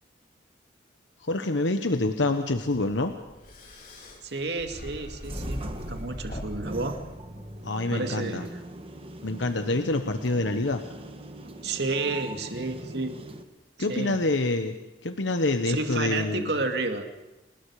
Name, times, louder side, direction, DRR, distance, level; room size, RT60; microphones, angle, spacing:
voice 1, 1.2-3.1 7.6-8.5 9.2-10.8 13.8-14.8 15.0-16.5, left 2 dB, 80° left, 7 dB, 1.2 m, -26 dB
sound 1, 2.7-7.6, equal, 50° left, 4.3 m, -40 dB
voice 2, 4.2-7.0 7.9-8.5 11.6-13.2 13.9-14.2 15.7-17.1, right 3 dB, 65° right, 5 dB, 2.4 m, -31 dB
sound 2, 5.2-13.4, right 1 dB, 30° right, 1.5 m, -42 dB
29.5 x 20.0 x 4.9 m, 1.0 s
head